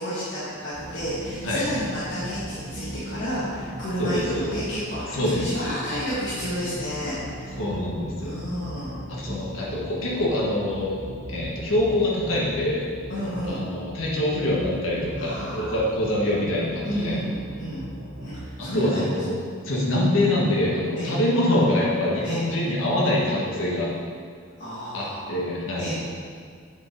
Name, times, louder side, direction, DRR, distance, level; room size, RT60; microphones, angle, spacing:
voice 1, 0.0-7.6 8.2-9.0 13.1-13.6 15.2-15.8 16.8-17.8 18.2-19.2 21.0-21.1 22.2-22.4 24.6-25.3 25.8-25.9, equal, 60° left, -11 dB, 2.0 m, -31 dB
sound 1, 0.7-18.4, equal, 90° right, 2.1 m, -38 dB
voice 2, 4.0-4.5 5.1-5.4 7.6-8.4 9.1-10.9 11.3-12.8 13.5-17.2 18.6-19.3 19.6-23.9 24.9-25.9, left 1 dB, 80° left, -5 dB, 1.8 m, -25 dB
7.8 x 5.2 x 5.4 m, 2.1 s
head